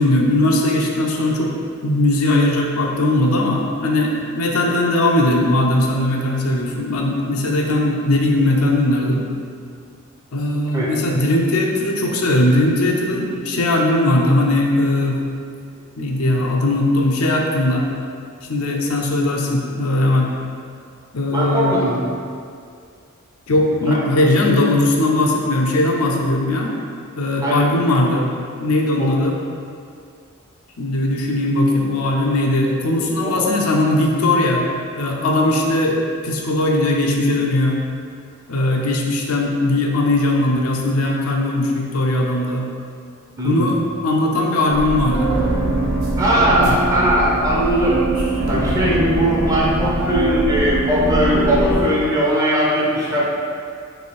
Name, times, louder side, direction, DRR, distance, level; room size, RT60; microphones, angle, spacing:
voice 1, 0.0-1.5 1.8-9.2 10.3-15.2 16.0-17.9 18.5-20.3 21.1-21.8 23.5-26.7 27.2-28.3 28.6-29.4 30.8-34.6 35.0-37.8 38.5-42.7 43.4-45.3 46.5-46.8, left 1 dB, 90° left, 0 dB, 0.6 m, -19 dB
voice 2, 21.3-22.0 23.9-24.0 27.4-27.7 29.0-29.1 33.2-33.6 43.4-43.7 46.2-48.1 48.5-53.3, right 1 dB, 15° right, -5 dB, 0.5 m, -19 dB
sound 1, 44.7-51.8, right 1 dB, 85° right, 0.9 m, -21 dB
3.3 x 3.1 x 4.2 m, 2.3 s
head